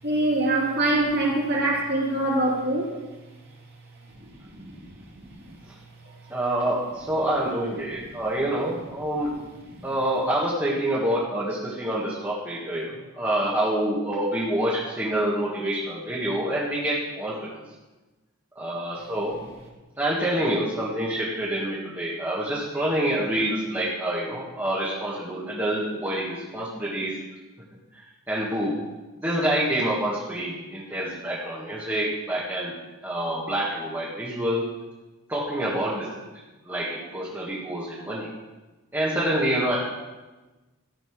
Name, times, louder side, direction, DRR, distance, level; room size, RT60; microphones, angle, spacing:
voice 1, 0.0-2.9 5.2-5.6 8.1-8.2 9.7-9.9, right 2 dB, 50° right, -4 dB, 2.9 m, -24 dB
voice 2, 6.3-9.3 9.8-17.6 18.6-19.3 20.0-27.2 28.3-28.8 29.2-32.7 33.0-34.6 35.3-36.1 36.7-38.3 38.9-39.8, right 1 dB, 10° right, -7 dB, 1.7 m, -27 dB
14.5 x 5.9 x 6.1 m, 1.2 s
head